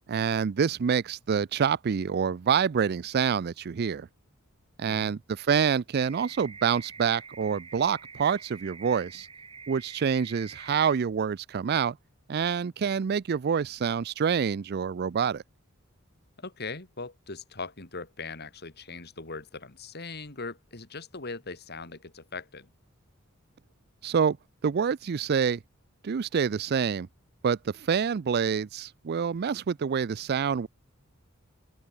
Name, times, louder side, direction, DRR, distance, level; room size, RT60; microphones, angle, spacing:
voice 1, 0.1-4.1 4.8-9.3 9.7-12.0 12.3-15.4 24.0-24.4 24.6-25.6 26.0-27.1 27.4-30.7, right 7 dB, 50° right, 0.4 m, -27 dB
voice 2, 4.8-5.2 16.4-22.7, left 4 dB, 50° left, 3.6 m, -40 dB
sound 1, 6.0-11.0, right 5 dB, 25° right, 3.3 m, -46 dB
open air
head